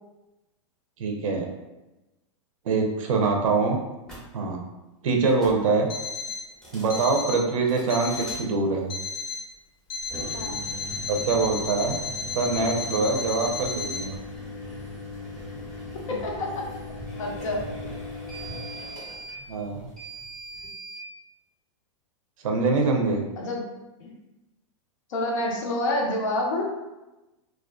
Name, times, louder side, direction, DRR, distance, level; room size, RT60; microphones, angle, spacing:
voice 1, 1.0-1.5 2.7-3.8 4.3-4.6 5.0-5.9 6.7-8.9 11.1-12.0 12.3-14.2 19.5-19.9 22.4-23.2, right 3 dB, 80° right, 1 dB, 0.5 m, -24 dB
sound 1, 4.0-4.2 5.2-5.6 6.5-7.2 7.7-8.4 10.0-21.0, left 1 dB, 5° left, 0.6 m, -39 dB
Alarm, 5.9-6.5 6.9-7.5 7.9-8.5 8.9-9.5 9.9-14.0, left 4 dB, 45° left, 0.5 m, -33 dB
voice 2, 16.1-16.6 17.2-17.6 23.4-23.6 24.0-24.1 25.1-26.7, left 1 dB, 75° left, -1 dB, 0.7 m, -28 dB
2.4 x 2.2 x 2.2 m, 1.0 s
hypercardioid pair, 140°, 17 cm